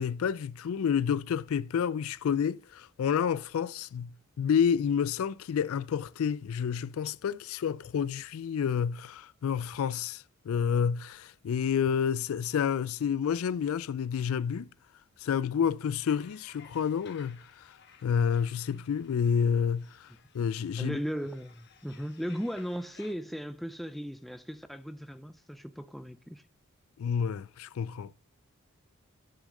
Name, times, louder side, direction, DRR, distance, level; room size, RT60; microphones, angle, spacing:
voice 1, 0.0-4.1 4.4-14.7 15.2-17.4 18.0-20.1 20.3-21.0 27.0-28.1, left 7 dB, 75° left, 0.3 m, -29 dB
sound 1, 16.0-23.1, left 7 dB, 50° left, 1.2 m, -58 dB
voice 2, 20.8-26.4, equal, ahead, 0.4 m, -37 dB
9.7 x 6.4 x 3.8 m
head